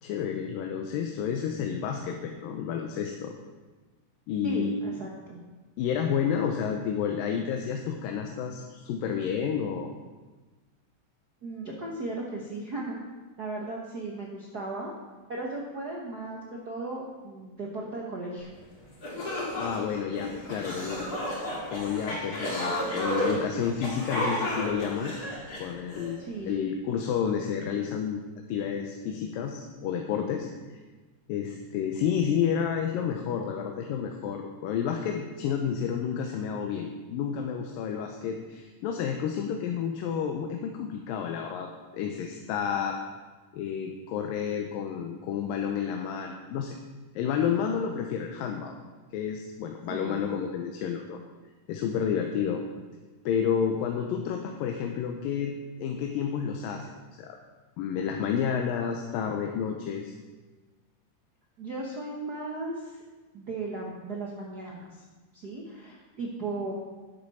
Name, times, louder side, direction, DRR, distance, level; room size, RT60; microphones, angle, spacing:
voice 1, 0.0-3.3 4.3-4.7 5.8-9.9 19.5-21.1 21.7-25.2 25.6-28.2 28.5-30.8 31.3-43.0 43.5-46.8 47.1-48.7 49.1-51.2 51.7-52.6 53.3-56.9 57.2-57.4 57.8-60.1, left 7 dB, 90° left, 3 dB, 2.5 m, -30 dB
voice 2, 4.4-5.4 11.4-13.0 13.4-14.9 15.3-16.4 16.6-18.5 26.2-26.7 49.9-50.4 61.6-63.0 63.3-65.0 65.3-66.7, right 2 dB, 70° right, -2 dB, 0.9 m, -36 dB
sound 1, 18.6-18.7 19.0-26.1, equal, 30° left, 2.2 m, -32 dB
11.5 x 10.0 x 4.2 m, 1.3 s
omnidirectional pair, 3.9 m